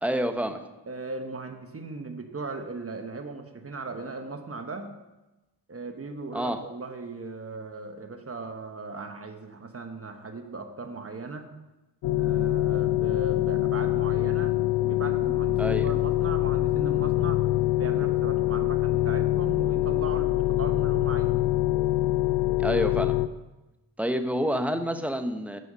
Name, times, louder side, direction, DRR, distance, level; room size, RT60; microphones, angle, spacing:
voice 1, 0.0-0.6 6.3-6.6 15.6-15.9 22.6-23.1 24.0-25.6, equal, 5° right, 7 dB, 0.9 m, -28 dB
voice 2, 0.9-4.9 5.7-11.5 12.2-17.4 17.7-21.5, right 3 dB, 35° right, 6 dB, 1.1 m, -38 dB
sound 1, 12.0-23.3, left 16 dB, 80° left, 0.5 m, -24 dB
9.4 x 5.6 x 5.5 m, 1.0 s
cardioid pair, 75°, 42 cm